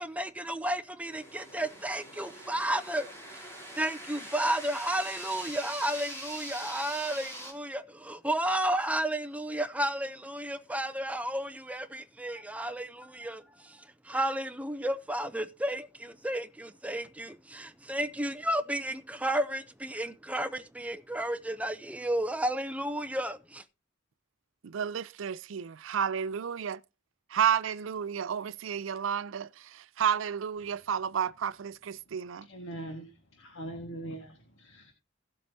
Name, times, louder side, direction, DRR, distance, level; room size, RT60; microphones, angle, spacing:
voice 1, 0.0-23.6, right 1 dB, 5° right, 0.6 m, -32 dB
sound 1, 1.1-7.5, equal, 15° left, 2.8 m, -43 dB
voice 2, 24.6-26.8 27.3-32.5, right 8 dB, 85° right, 0.4 m, -31 dB
voice 3, 32.4-34.9, right 1 dB, 85° left, 1.8 m, -42 dB
16.0 x 7.7 x 2.8 m
head